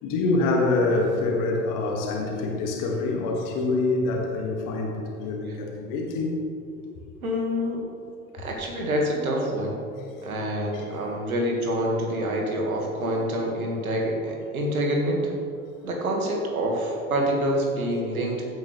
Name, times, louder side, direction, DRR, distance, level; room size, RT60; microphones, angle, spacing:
voice 1, 0.0-6.4 10.0-10.1 10.7-10.8 13.0-13.2, left 2 dB, 45° left, 1 dB, 2.2 m, -26 dB
voice 2, 7.2-7.8 8.3-9.8 10.2-15.3 15.8-18.4, equal, 75° right, 0 dB, 2.1 m, -26 dB
15.5 x 9.6 x 3.4 m, 2.4 s
figure-of-eight pair, 70°, 43 cm